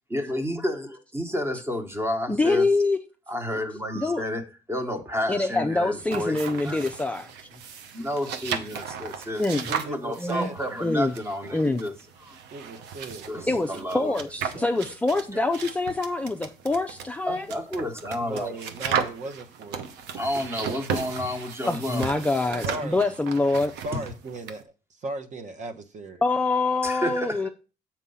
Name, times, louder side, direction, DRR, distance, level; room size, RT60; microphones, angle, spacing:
voice 1, 0.1-2.7 3.3-6.8 7.9-9.4 9.7-11.9 12.2-12.4 13.3-14.1 15.3-15.4 17.3-19.0 20.1-22.2 22.5-22.8 23.9-24.0 26.8-27.5, left 1 dB, 15° right, 1.3 m, -31 dB
voice 2, 2.3-3.0 4.0-4.2 5.3-7.3 9.4-9.6 10.2-10.5 10.8-11.1 11.5-11.8 13.5-17.5 21.6-23.7 26.2-27.5, left 2 dB, 10° left, 0.4 m, -25 dB
sound 1, 6.0-24.6, right 7 dB, 90° right, 0.9 m, -36 dB
voice 3, 9.5-10.8 12.5-14.2 14.5-15.1 18.2-19.8 22.6-23.1 23.8-24.6 24.9-26.2, right 2 dB, 45° right, 1.0 m, -37 dB
7.3 x 4.5 x 5.5 m
cardioid pair, 110°, 17 cm